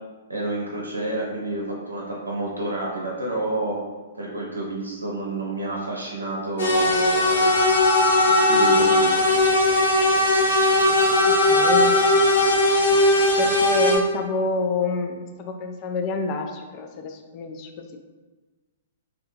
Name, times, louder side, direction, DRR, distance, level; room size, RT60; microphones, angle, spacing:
voice 1, 0.3-3.8 4.2-7.5 8.2-9.2, right 2 dB, 90° right, -3 dB, 0.6 m, -29 dB
sound 1, 6.6-14.0, left 1 dB, 70° left, 0.7 m, -18 dB
voice 2, 11.2-11.9 13.4-18.0, left 4 dB, 35° left, 4 dB, 0.3 m, -28 dB
2.7 x 2.4 x 2.6 m, 1.3 s
figure-of-eight pair, 115°, 0 cm